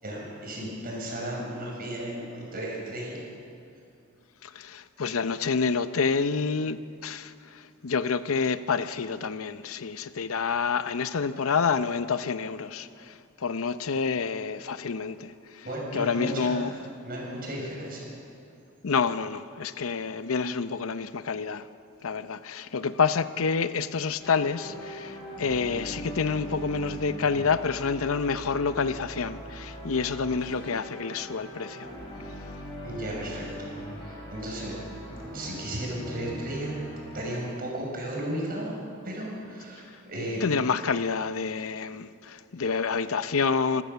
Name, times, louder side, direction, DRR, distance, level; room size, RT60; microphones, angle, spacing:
voice 1, 0.0-3.2 15.6-16.7 17.0-18.1 32.8-33.7 33.9-34.7 35.3-36.8 37.1-38.8 39.0-40.5, right 1 dB, 45° right, 6.3 m, -34 dB
voice 2, 4.4-15.6 15.9-16.7 18.8-21.7 22.0-31.9 40.4-43.8, left 5 dB, 75° left, 0.7 m, -28 dB
sound 1, 24.2-37.3, equal, 20° left, 6.4 m, -40 dB
27.0 x 14.5 x 7.0 m
head